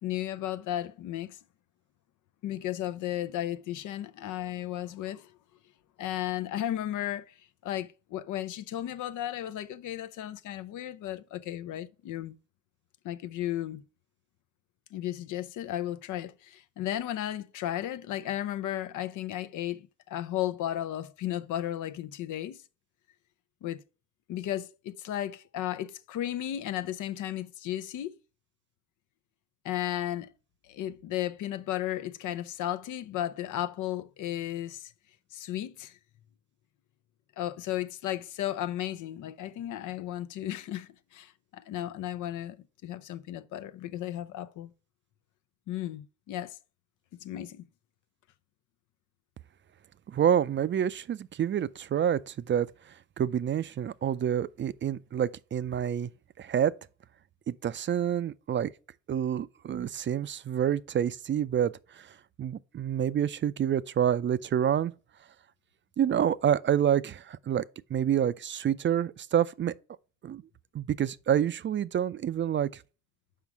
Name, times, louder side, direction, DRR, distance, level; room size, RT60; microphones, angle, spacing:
voice 1, 0.0-1.4 2.4-5.3 6.0-7.3 7.6-12.4 13.0-13.8 14.9-22.6 23.6-23.8 24.3-28.2 29.6-30.3 30.6-34.9 35.3-36.0 37.4-42.6 42.8-44.7 45.7-46.6 47.2-47.6, left 12 dB, 80° left, 0.6 m, -34 dB
voice 2, 50.1-56.1 56.4-56.7 57.5-58.7 59.1-64.9 66.0-67.6 67.9-69.7 70.2-70.4 70.7-72.8, right 9 dB, 40° right, 0.4 m, -28 dB
5.6 x 5.0 x 4.5 m
cardioid pair, 90°, 30 cm